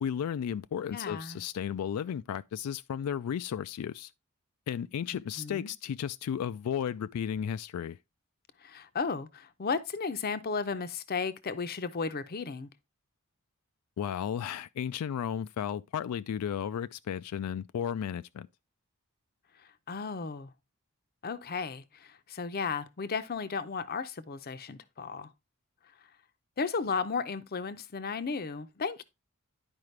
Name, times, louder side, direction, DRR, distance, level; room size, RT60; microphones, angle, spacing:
voice 1, 0.0-4.1 4.7-8.0 14.0-18.5, left 8 dB, 90° left, 0.3 m, -34 dB
voice 2, 0.9-1.4 5.4-5.7 8.6-12.7 19.6-20.5 21.2-25.3 26.6-29.0, left 5 dB, 45° left, 0.6 m, -34 dB
10.5 x 4.8 x 3.2 m
head